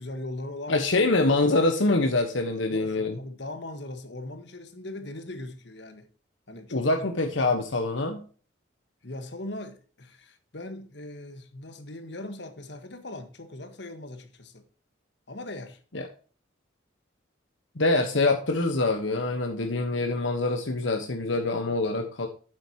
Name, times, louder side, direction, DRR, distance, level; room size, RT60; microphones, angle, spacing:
voice 1, 0.0-1.0 2.6-6.1 6.5-7.1 9.0-14.6 15.3-15.8, left 1 dB, 60° left, 1.5 m, -40 dB
voice 2, 0.7-3.2 6.7-8.2 15.9-16.1 17.7-22.3, left 2 dB, 80° left, 1.2 m, -25 dB
9.0 x 8.2 x 2.9 m
head